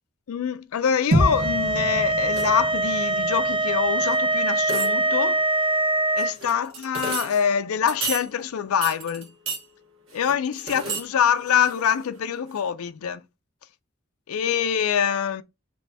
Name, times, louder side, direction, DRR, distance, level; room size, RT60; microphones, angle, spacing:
voice 1, 0.3-5.4 6.1-9.3 10.1-13.2 14.3-15.4, left 8 dB, 80° left, 0.4 m, -25 dB
sound 1, 1.1-5.5, right 1 dB, 85° right, 1.2 m, -28 dB
sound 2, 1.2-6.3, right 2 dB, 25° right, 0.3 m, -23 dB
sound 3, 2.3-2.7 4.1-4.2 4.6-5.2 6.2-7.5 7.9-8.3 8.8-9.6 10.1-11.1 11.4-12.2 12.6-12.7, right 4 dB, 65° right, 1.2 m, -33 dB
3.3 x 3.1 x 4.0 m
head